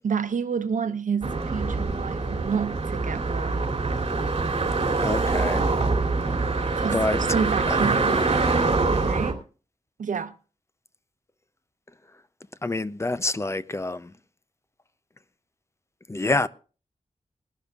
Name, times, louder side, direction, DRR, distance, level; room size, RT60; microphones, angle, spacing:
voice 1, 0.0-3.7 6.7-8.4 8.9-9.4 10.0-10.3, right 6 dB, 80° right, 0.9 m, -29 dB
sound 1, 1.2-9.3, right 3 dB, 45° right, 2.8 m, -24 dB
voice 2, 5.0-5.7 6.4-6.6 6.9-7.2 7.7-7.9 12.6-14.1 16.1-16.5, left 2 dB, 20° left, 0.5 m, -27 dB
21.0 x 12.0 x 2.4 m
wide cardioid pair, 120°, 13 cm